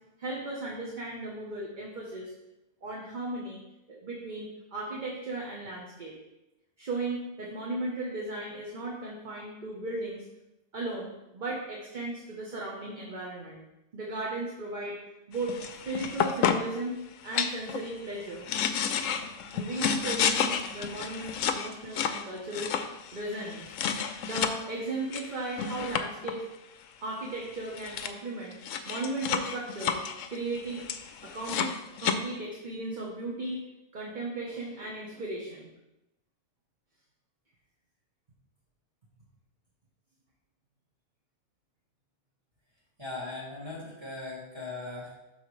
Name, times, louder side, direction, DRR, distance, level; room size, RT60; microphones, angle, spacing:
voice 1, 0.2-2.3 2.8-3.6 3.9-6.1 6.8-10.2 10.7-13.6 13.9-15.0 15.3-15.6 15.9-18.5 19.5-22.7 23.1-23.7 24.2-26.5 27.0-28.6 28.8-30.0 30.3-30.9 31.2-33.6 33.9-35.7, right 2 dB, 35° right, -3 dB, 1.1 m, -36 dB
sound 1, 15.4-16.8 17.3-17.9 18.3-24.6 25.1-26.4 27.4-27.5 27.6-28.1 28.5-32.1, left 7 dB, 70° left, 0.9 m, -31 dB
voice 2, 43.0-45.1, left 2 dB, 20° right, -6 dB, 2.3 m, -39 dB
12.0 x 4.2 x 3.2 m, 0.94 s
omnidirectional pair, 1.5 m